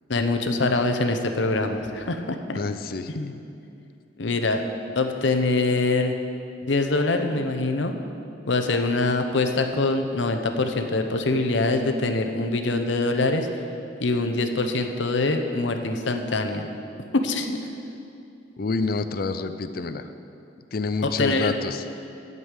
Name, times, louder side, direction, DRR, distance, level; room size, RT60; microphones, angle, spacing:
voice 1, 0.1-2.6 3.1-3.4 4.2-4.6 4.9-6.2 6.6-8.0 8.4-13.5 14.0-16.7 17.1-17.6 21.0-21.5, left 2 dB, 75° left, 5 dB, 0.9 m, -24 dB
voice 2, 2.6-3.1 18.6-20.1 20.7-21.8, left 3 dB, 50° left, 10 dB, 0.5 m, -28 dB
11.0 x 5.4 x 8.3 m, 2.6 s
head